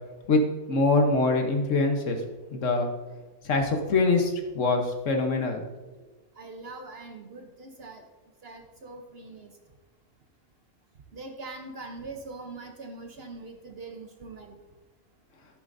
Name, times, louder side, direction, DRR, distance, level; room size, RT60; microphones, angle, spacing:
voice 1, 0.3-2.2 2.5-2.9 3.4-5.6, left 3 dB, 60° left, 4 dB, 1.3 m, -24 dB
voice 2, 6.4-8.0 8.4-9.5 11.1-14.6, right 3 dB, 50° right, 4 dB, 0.9 m, -42 dB
10.0 x 8.1 x 2.6 m, 1.2 s
omnidirectional pair, 1.5 m